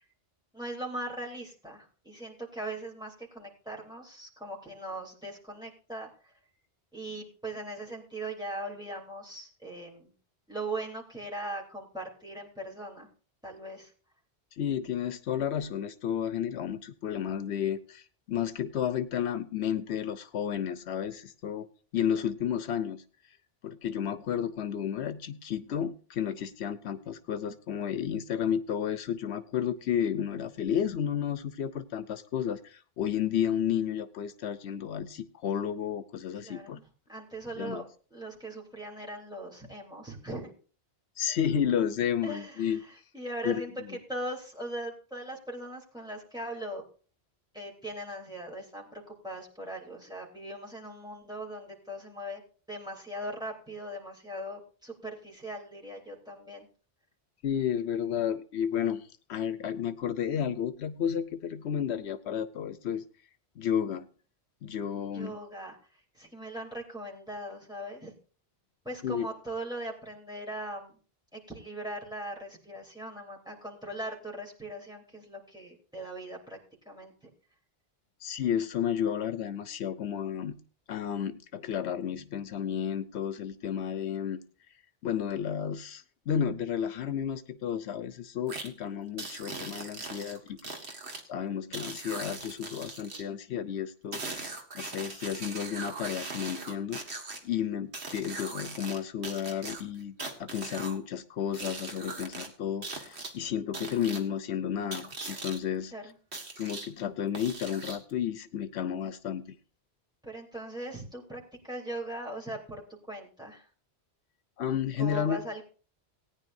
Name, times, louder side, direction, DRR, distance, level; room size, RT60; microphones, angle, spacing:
voice 1, 0.5-6.3 6.9-10.1 10.5-13.1 13.4-13.9 36.4-36.8 37.1-37.8 38.1-40.5 42.2-43.7 44.1-46.8 47.5-52.4 52.7-56.7 65.1-65.8 66.1-68.1 68.8-70.9 71.3-76.6 76.8-77.1 105.9-106.1 110.2-112.8 113.1-113.7 115.0-115.6, right 1 dB, 5° right, -2 dB, 3.2 m, -40 dB
voice 2, 14.6-21.7 21.9-23.0 23.6-36.8 37.6-37.8 41.2-42.8 43.4-43.9 57.4-63.0 63.6-64.1 64.6-65.3 69.0-69.3 78.2-80.6 80.9-84.4 85.0-91.0 91.3-97.0 97.4-105.9 106.6-109.5 114.6-115.4, left 9 dB, 80° left, 13 dB, 1.0 m, -32 dB
sound 1, 88.5-88.7 89.2-91.2 91.7-93.2 94.1-97.4 97.9-99.0 99.2-101.0 101.5-102.5 102.8-103.3 103.7-104.2 104.9-105.6 106.3-106.9 107.3-108.1, right 3 dB, 80° right, 1.9 m, -40 dB
18.5 x 9.8 x 2.6 m, 0.38 s
omnidirectional pair, 1.1 m